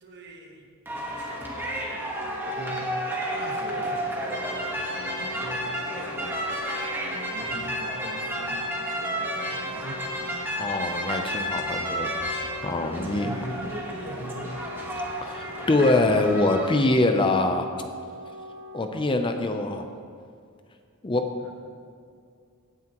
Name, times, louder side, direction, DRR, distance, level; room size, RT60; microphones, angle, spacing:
voice 1, 0.0-2.9 3.3-6.4 7.0-8.6 9.0-10.5 12.9-15.0 15.5-15.9 21.4-21.5, right 1 dB, 55° right, 2 dB, 1.3 m, -42 dB
sound 1, 0.9-16.7, equal, 10° right, 1.4 m, -32 dB
Wind instrument woodwind instrument, 2.0-19.4, left 1 dB, 80° right, 1.0 m, -41 dB
voice 2, 10.6-13.3 15.2-17.7 18.7-19.9 21.0-21.3, left 2 dB, 25° left, 6 dB, 0.6 m, -24 dB
16.0 x 9.4 x 3.0 m, 2.3 s
head